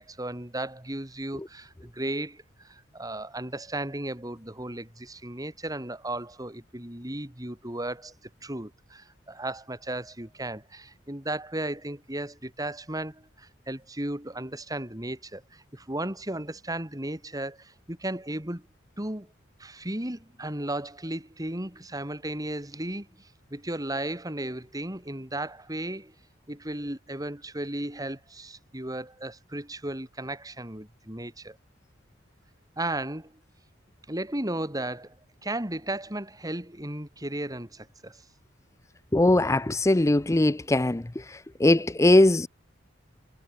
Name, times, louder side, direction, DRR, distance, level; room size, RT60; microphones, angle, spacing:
voice 1, 0.0-8.1 8.4-18.7 19.0-19.3 19.6-26.1 26.5-31.6 32.8-33.3 34.1-35.1 35.4-38.2, right 1 dB, 20° right, 3.4 m, -35 dB
voice 2, 39.1-41.0 41.6-42.5, left 1 dB, 15° left, 0.5 m, -20 dB
head